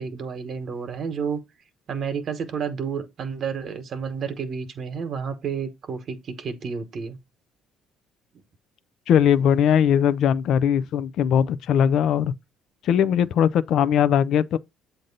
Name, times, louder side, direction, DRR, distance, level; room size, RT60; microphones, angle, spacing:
voice 1, 0.0-1.4 1.9-7.2, right 6 dB, 55° right, 1.1 m, -30 dB
voice 2, 9.1-12.3 12.8-14.6, left 8 dB, 65° left, 0.4 m, -20 dB
7.6 x 2.6 x 5.2 m
supercardioid pair, 80°, 0 cm